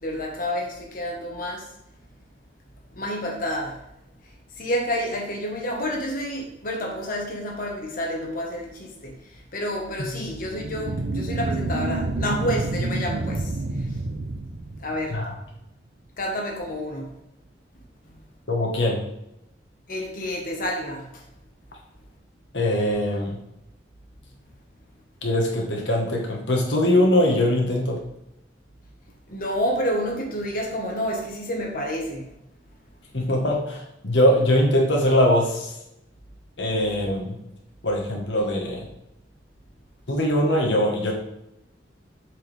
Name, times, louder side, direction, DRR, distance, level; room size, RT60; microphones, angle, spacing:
voice 1, 0.0-1.7 2.9-3.8 4.6-9.1 9.5-13.5 14.8-15.2 16.2-17.1 19.9-21.1 29.3-32.2, equal, 50° left, -1 dB, 1.3 m, -29 dB
sound 1, 10.4-15.3, right 2 dB, 70° right, 0.6 m, -28 dB
voice 2, 18.5-19.0 22.5-23.4 25.2-28.0 33.1-35.7 36.6-37.3 37.8-38.8 40.1-41.1, left 1 dB, 80° left, 0 dB, 1.3 m, -21 dB
7.7 x 4.7 x 3.4 m, 0.83 s
head